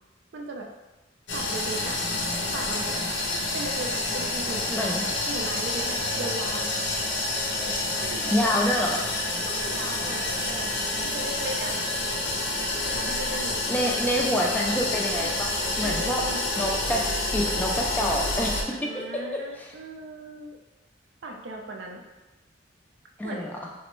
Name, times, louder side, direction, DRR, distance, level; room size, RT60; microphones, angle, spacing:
voice 1, 0.3-0.7 1.3-2.0 2.5-3.0 3.5-4.6 5.0-6.7 7.9-8.4 9.4-10.7 11.0-11.8 12.8-13.6 15.2-15.5 15.8-16.4 18.7-20.6 21.2-22.0 23.2-23.5, right 2 dB, 70° right, 2 dB, 0.4 m, -37 dB
sound 1, 1.3-18.6, left 2 dB, 75° left, 0.6 m, -28 dB
voice 2, 4.7-5.0 8.3-9.0 13.7-16.2 16.6-17.0 17.3-18.5 19.6-19.7 23.2-23.5, equal, 10° left, -2 dB, 0.3 m, -26 dB
3.2 x 2.0 x 3.0 m, 1.1 s
head